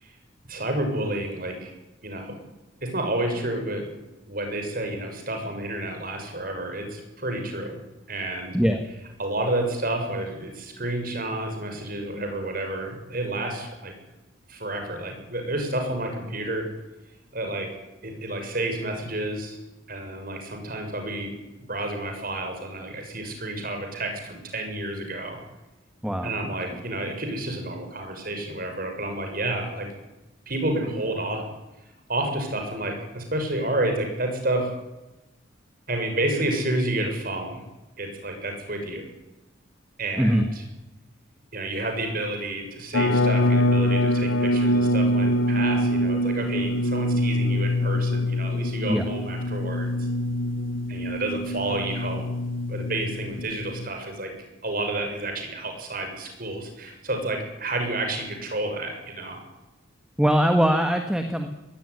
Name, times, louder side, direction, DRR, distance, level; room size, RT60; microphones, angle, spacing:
voice 1, 0.5-1.7 2.0-2.3 2.8-3.9 4.3-7.8 8.1-8.6 9.2-13.9 14.5-16.7 17.3-17.7 18.0-19.6 19.9-21.3 21.7-25.4 26.2-29.9 30.5-31.5 32.1-34.7 35.9-37.6 38.0-39.0 40.0-40.4 41.5-49.9 50.9-52.2 52.7-54.3 54.6-59.4, right 1 dB, 50° right, 4 dB, 6.5 m, -30 dB
voice 2, 26.0-26.8 40.2-40.4 48.9-49.0 60.2-61.5, equal, 5° right, 6 dB, 1.5 m, -22 dB
sound 1, 42.9-53.9, left 1 dB, 90° left, 0.9 m, -24 dB
21.5 x 18.0 x 9.9 m, 1.0 s
head